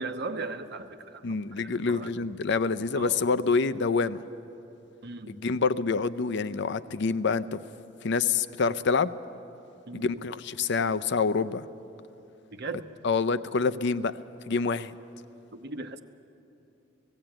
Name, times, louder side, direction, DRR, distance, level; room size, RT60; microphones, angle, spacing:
voice 1, 0.0-2.1 2.9-3.2 5.0-5.4 9.9-10.2 12.5-12.8 15.5-16.0, right 3 dB, 60° right, 8 dB, 0.9 m, -37 dB
voice 2, 1.2-4.2 5.3-7.6 8.0-9.1 9.9-11.6 13.0-14.2 14.5-14.9, left 4 dB, 65° left, 14 dB, 0.5 m, -27 dB
17.5 x 16.5 x 8.9 m, 2.9 s
head